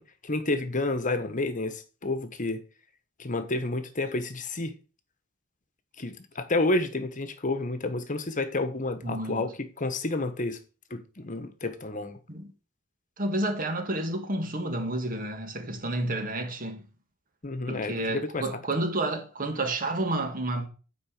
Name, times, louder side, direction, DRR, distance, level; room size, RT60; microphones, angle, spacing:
voice 1, 0.0-2.6 3.2-4.7 6.0-10.6 10.9-12.2 17.4-18.5, left 2 dB, 40° left, 1.2 m, -30 dB
voice 2, 9.0-9.5 12.3-12.5 13.2-16.9 17.7-20.7, right 1 dB, 45° right, 1.7 m, -30 dB
8.7 x 4.9 x 4.9 m
head